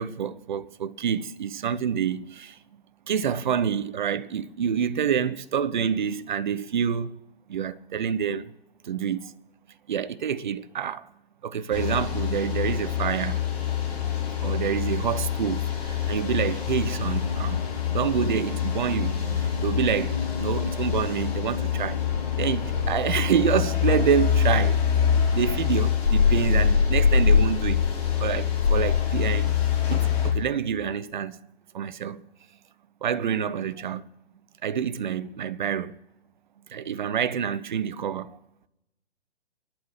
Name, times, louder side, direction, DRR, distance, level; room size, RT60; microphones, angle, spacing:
voice 1, 0.0-2.6 3.1-7.2 7.5-8.5 8.8-9.4 9.9-11.1 11.4-13.4 14.0-14.1 14.4-17.6 17.9-22.0 22.4-24.9 25.3-27.8 28.2-29.5 29.9-31.4 31.7-32.2 33.0-34.1 34.6-36.0 36.7-38.4, right 8 dB, 45° right, 0.6 m, -27 dB
sound 1, 11.7-30.3, left 7 dB, 35° left, 3.7 m, -25 dB
sound 2, 16.2-23.5, left 3 dB, 70° left, 3.4 m, -35 dB
27.5 x 11.5 x 3.2 m
figure-of-eight pair, 125°, 33 cm